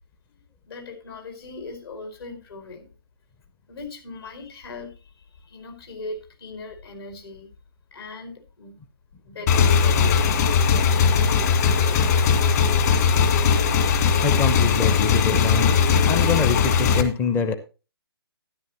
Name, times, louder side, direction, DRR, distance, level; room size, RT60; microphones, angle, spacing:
voice 1, 0.7-2.9 3.7-7.5 7.9-8.8 9.2-13.0, left 2 dB, 70° left, 4.8 m, -39 dB
Motorcycle / Engine, 9.5-17.0, left 6 dB, 40° left, 1.7 m, -19 dB
voice 2, 14.2-15.7 16.0-17.5, left 5 dB, 15° left, 0.5 m, -24 dB
12.5 x 10.5 x 2.9 m
figure-of-eight pair, 140°, 13 cm